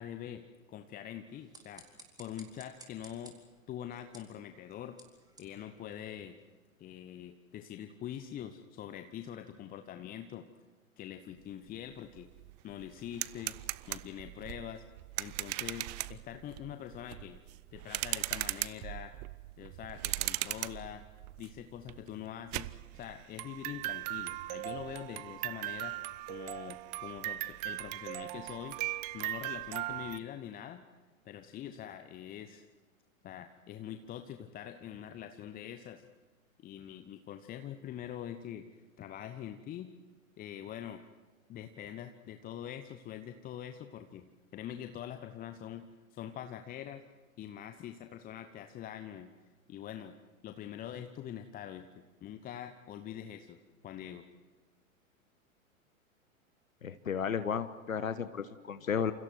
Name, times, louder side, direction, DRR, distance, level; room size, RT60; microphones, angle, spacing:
voice 1, 0.0-1.8 2.2-3.4 3.7-5.0 5.4-6.4 6.8-10.5 11.0-12.3 12.6-13.6 13.9-14.8 15.2-17.4 17.7-19.1 19.6-21.0 21.4-26.0 26.3-28.8 29.1-30.9 31.2-32.7 33.2-36.0 36.6-38.7 39.0-39.9 40.4-41.0 41.5-47.0 47.4-49.3 49.7-50.2 50.4-54.3, left 10 dB, 20° left, 8 dB, 1.1 m, -44 dB
sound 1, 1.3-6.5, right 2 dB, 10° right, 4.2 m, -58 dB
sound 2, 11.8-11.9 12.2-30.2, right 19 dB, 30° right, 0.6 m, -39 dB
voice 2, 56.8-59.1, left 7 dB, 70° left, 11 dB, 1.3 m, -33 dB
29.0 x 28.0 x 4.7 m, 1.4 s
figure-of-eight pair, 100°, 42 cm